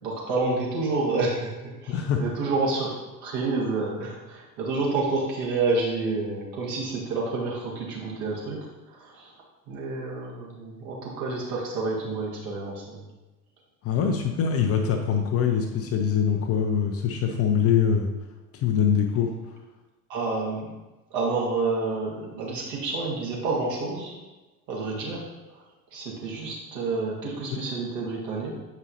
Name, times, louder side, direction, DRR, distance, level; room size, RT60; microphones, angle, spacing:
voice 1, 0.0-2.9 3.2-9.3 9.7-13.0 20.1-20.7 21.1-24.2 24.7-25.2 25.5-25.6 25.9-28.5, right 3 dB, 50° right, -4 dB, 2.1 m, -29 dB
voice 2, 1.9-2.2 13.8-18.1 18.5-19.3, left 7 dB, 30° left, 4 dB, 0.6 m, -23 dB
8.0 x 5.1 x 2.9 m, 1.1 s
figure-of-eight pair, 70°, 47 cm